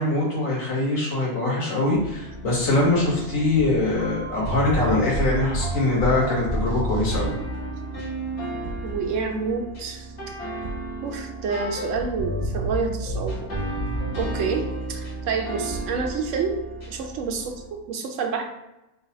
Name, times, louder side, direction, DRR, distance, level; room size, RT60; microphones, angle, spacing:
voice 1, 0.0-7.3, left 2 dB, 85° left, -5 dB, 1.7 m, -23 dB
sound 1, 1.9-17.6, right 1 dB, 55° left, 1.3 m, -31 dB
voice 2, 8.8-10.1 11.0-13.5 14.2-18.5, right 5 dB, 75° right, 3 dB, 0.9 m, -28 dB
3.3 x 2.3 x 4.0 m, 0.95 s
omnidirectional pair, 1.4 m